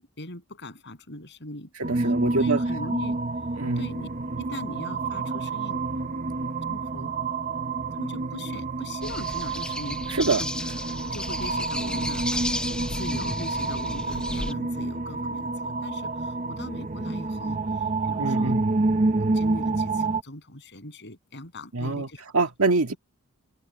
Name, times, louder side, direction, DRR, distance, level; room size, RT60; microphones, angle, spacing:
voice 1, 0.2-1.7 2.4-3.2 3.8-4.1 4.4-5.8 6.7-7.1 7.5-10.2 11.0-12.3 12.9-18.6 19.1-22.2 22.9-23.0, left 1 dB, 55° left, 7.8 m, -40 dB
sound 1, 1.8-20.2, right 3 dB, 35° right, 0.7 m, -28 dB
voice 2, 1.8-2.6 3.6-3.9 10.1-10.4 16.3-16.5 18.2-18.7 21.7-22.1 22.3-22.9, right 3 dB, 70° right, 1.9 m, -25 dB
sound 2, 9.0-14.5, left 1 dB, 5° left, 0.7 m, -33 dB
head